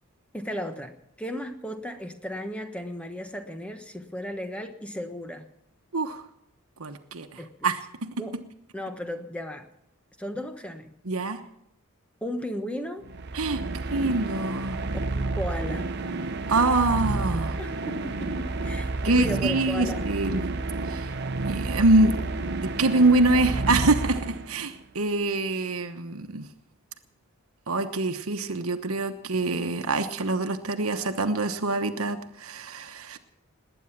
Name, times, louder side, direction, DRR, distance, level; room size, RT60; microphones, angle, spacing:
voice 1, 0.3-5.5 7.4-7.5 8.2-8.4 8.7-9.7 10.2-11.0 12.2-13.1 15.1-16.0 17.6-20.0, equal, 5° left, 7 dB, 1.2 m, -35 dB
voice 2, 6.8-7.8 11.1-11.4 13.3-13.6 13.9-14.8 16.5-17.6 19.0-20.5 20.9-21.1 21.5-22.1 22.6-26.5 27.7-33.2, right 2 dB, 80° right, 7 dB, 1.1 m, -25 dB
sound 1, 13.0-24.8, right 3 dB, 50° right, 0.9 m, -30 dB
20.0 x 9.2 x 7.4 m, 0.77 s
head